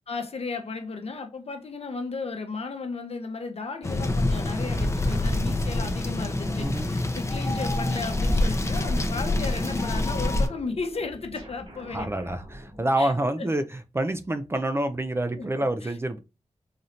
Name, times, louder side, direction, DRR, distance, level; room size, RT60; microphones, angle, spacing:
voice 1, 0.1-12.1 13.0-13.1 13.4-13.5 15.4-15.5 15.8-15.9, left 4 dB, 60° left, 0.8 m, -34 dB
sound 1, 3.8-10.5, left 2 dB, 25° left, 0.5 m, -26 dB
sound 2, 7.3-13.5, equal, 50° right, 1.8 m, -46 dB
voice 2, 11.9-16.2, right 1 dB, 20° right, 0.4 m, -27 dB
4.1 x 3.1 x 2.6 m
wide cardioid pair, 105°, 12 cm